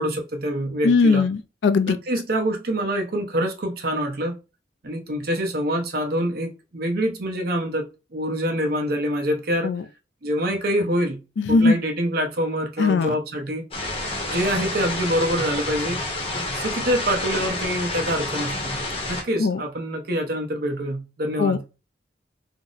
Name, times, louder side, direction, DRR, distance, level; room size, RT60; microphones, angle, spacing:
voice 1, 0.0-1.3 1.9-4.4 4.8-9.7 10.2-11.2 11.5-13.7 14.3-16.0 16.5-18.8 19.1-21.6, equal, 55° right, 0.7 m, -25 dB
voice 2, 0.8-2.0 9.6-9.8 11.4-11.8 12.8-13.2 19.4-19.6 21.4-21.6, left 4 dB, 75° left, 0.4 m, -19 dB
sound 1, 13.7-19.2, left 2 dB, 30° left, 0.7 m, -29 dB
2.6 x 2.0 x 3.8 m
head